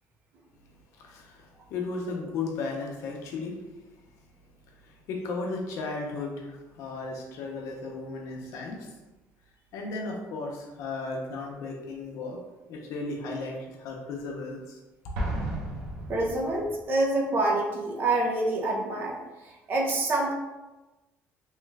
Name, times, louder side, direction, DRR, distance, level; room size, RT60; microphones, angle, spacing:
voice 1, 1.0-3.6 4.8-8.9 9.7-12.4 12.7-14.8, left 3 dB, 70° left, 0 dB, 0.7 m, -35 dB
Explosion, 15.1-16.9, right 1 dB, 85° right, 0.7 m, -33 dB
voice 2, 16.1-19.2 19.7-20.3, right 2 dB, 40° right, -2 dB, 0.6 m, -26 dB
3.1 x 2.3 x 3.2 m, 1.1 s
cardioid pair, 160°, 6 cm